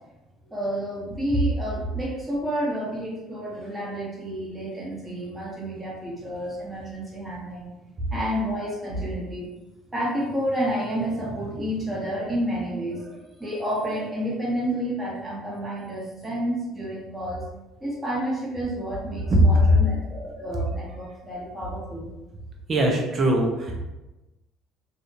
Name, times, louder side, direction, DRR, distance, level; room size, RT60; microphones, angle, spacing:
voice 1, 0.5-7.7 8.1-9.5 9.9-17.4 17.8-22.1, equal, 10° right, -6 dB, 1.4 m, -30 dB
voice 2, 22.7-23.8, right 1 dB, 40° right, 1 dB, 0.7 m, -22 dB
2.7 x 2.4 x 2.7 m, 1.0 s
supercardioid pair, 85°, 0 cm